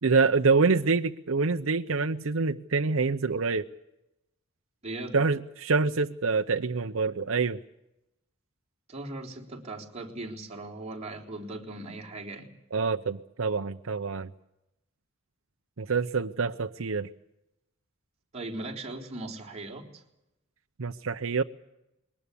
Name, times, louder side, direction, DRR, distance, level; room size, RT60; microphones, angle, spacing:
voice 1, 0.0-3.6 5.1-7.6 12.7-14.3 15.8-17.1 20.8-21.4, right 4 dB, 75° right, 6 dB, 0.7 m, -26 dB
voice 2, 4.8-5.2 8.9-12.5 18.3-20.0, right 2 dB, 30° right, 1 dB, 3.9 m, -39 dB
22.0 x 19.5 x 8.4 m, 0.87 s
head